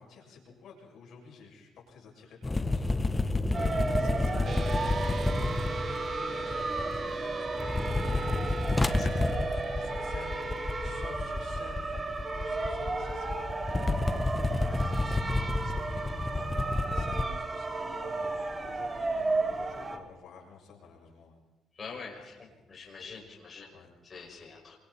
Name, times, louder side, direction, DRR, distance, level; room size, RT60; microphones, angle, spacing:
voice 1, 0.0-7.7 8.0-21.4 22.2-22.3 23.7-23.9, left 5 dB, 70° left, -1 dB, 7.2 m, -51 dB
sound 1, 2.4-7.1 7.5-17.2, left 2 dB, 20° left, 1.4 m, -30 dB
sound 2, 3.5-20.0, right 3 dB, 30° right, 3.0 m, -34 dB
sound 3, 4.4-11.1, right 3 dB, 55° right, 1.2 m, -39 dB
voice 2, 9.0-9.4 21.8-22.4 22.7-23.7 24.0-24.8, left 5 dB, 40° left, -1 dB, 6.3 m, -44 dB
28.5 x 24.5 x 4.4 m, 1.1 s
cardioid pair, 90°, 0 cm